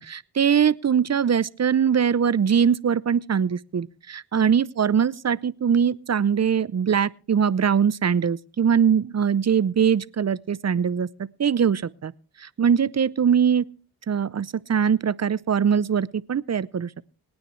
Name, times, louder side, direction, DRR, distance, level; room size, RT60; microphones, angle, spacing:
voice 1, 0.0-11.1 11.4-12.1 12.4-13.6 14.1-17.0, right 7 dB, 40° right, 0.6 m, -22 dB
24.5 x 9.7 x 3.2 m
cardioid pair, 50°, 42 cm